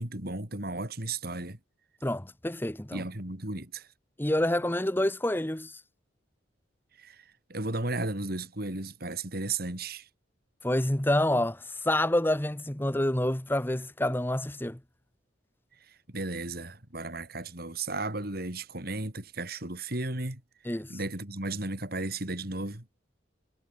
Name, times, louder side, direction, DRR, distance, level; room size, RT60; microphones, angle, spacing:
voice 1, 0.0-1.6 2.9-3.9 7.0-10.1 15.9-20.4 20.9-22.9, right 2 dB, 50° right, 3.4 m, -34 dB
voice 2, 2.0-3.0 4.2-5.7 10.6-14.8 20.7-21.0, left 1 dB, 10° left, 1.0 m, -28 dB
head